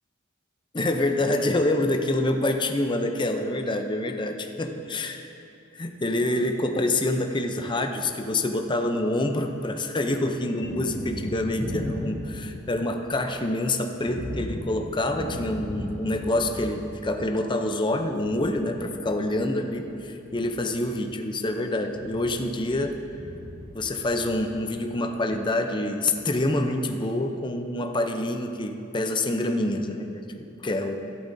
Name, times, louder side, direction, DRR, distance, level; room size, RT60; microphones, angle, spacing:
voice 1, 0.7-5.3 5.7-22.9 23.7-31.0, left 1 dB, 20° left, 5 dB, 0.6 m, -26 dB
Thunder, 8.6-9.6 9.8-25.1, left 1 dB, 25° right, 2.6 m, -38 dB
14.0 x 12.0 x 2.7 m, 2.7 s
head